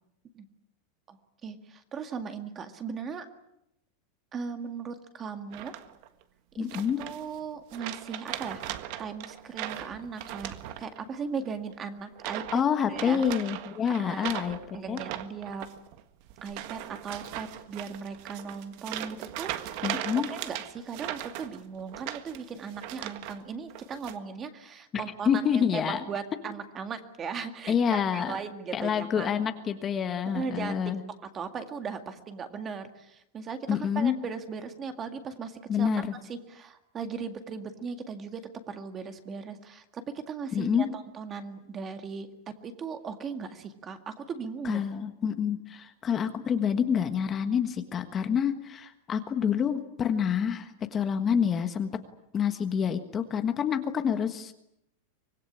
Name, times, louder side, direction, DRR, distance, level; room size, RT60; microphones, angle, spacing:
voice 1, 1.1-3.3 4.3-5.7 6.5-6.7 7.0-8.6 9.0-12.6 12.9-13.2 13.8-14.4 14.7-15.6 16.4-19.5 20.0-29.3 30.3-30.8 31.2-38.4 38.7-42.3 42.6-44.8, right 5 dB, 20° right, 8 dB, 2.0 m, -38 dB
sound 1, 5.5-6.1 6.7-7.4 7.7-11.2 11.4-11.7 12.2-12.6 12.9-23.4 23.7-24.2, right 13 dB, 45° right, 1.6 m, -39 dB
voice 2, 6.6-7.0 12.5-15.0 19.8-20.3 25.2-26.0 27.7-28.4 28.7-31.0 33.7-34.2 35.7-36.1 40.5-40.9 44.6-51.9 52.3-54.5, left 7 dB, 20° left, 8 dB, 1.4 m, -27 dB
25.5 x 20.0 x 10.0 m, 0.80 s
supercardioid pair, 165°, 0 cm